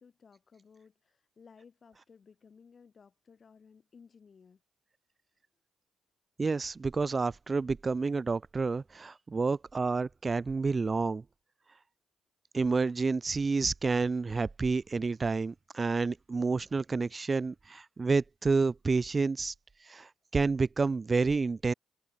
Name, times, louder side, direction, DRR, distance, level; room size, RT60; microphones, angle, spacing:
voice 1, 0.0-4.6, left 6 dB, 50° left, 5.2 m, -58 dB
voice 2, 6.4-11.2 12.5-19.5 19.9-21.7, right 4 dB, 35° right, 1.7 m, -29 dB
cardioid pair, 70°, 0 cm